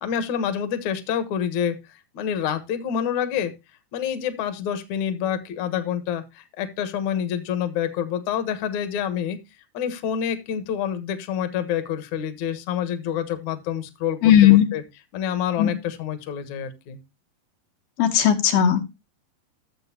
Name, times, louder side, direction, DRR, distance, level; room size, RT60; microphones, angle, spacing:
voice 1, 0.0-1.8 2.1-3.5 3.9-9.4 9.7-14.8 15.1-17.0, left 9 dB, 60° left, 10 dB, 2.3 m, -27 dB
voice 2, 14.2-14.7 15.6-15.7 18.0-18.8, left 10 dB, 75° left, 5 dB, 3.1 m, -16 dB
13.0 x 7.9 x 2.9 m, 0.23 s
omnidirectional pair, 4.6 m